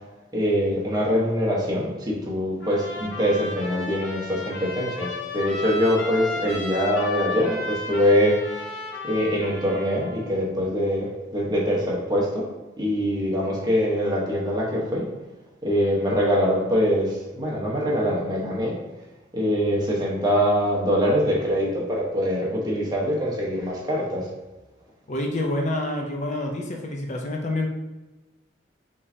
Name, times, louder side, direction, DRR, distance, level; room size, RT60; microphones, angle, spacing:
voice 1, 0.3-8.6 9.0-12.5 12.8-15.0 15.6-18.8 19.3-24.3, equal, 20° right, -4 dB, 1.1 m, -23 dB
Trumpet, 2.6-10.2, left 2 dB, 80° left, 1.1 m, -34 dB
voice 2, 25.1-27.7, left 1 dB, 40° left, 1 dB, 0.5 m, -27 dB
5.4 x 3.3 x 2.7 m, 1.1 s
head